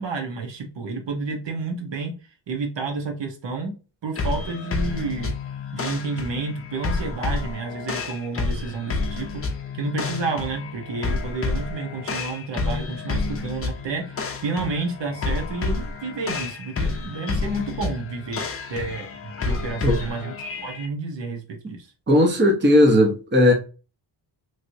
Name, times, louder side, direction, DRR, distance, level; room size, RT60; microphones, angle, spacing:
voice 1, 0.0-2.1 2.5-3.7 4.0-5.3 5.7-9.4 9.7-20.3 20.6-21.9, right 3 dB, 75° right, 1.1 m, -30 dB
sound 1, 4.1-20.9, left 4 dB, 30° left, 0.6 m, -29 dB
voice 2, 22.1-23.5, left 1 dB, 25° right, 0.8 m, -17 dB
3.2 x 3.0 x 2.6 m
wide cardioid pair, 135°, 44 cm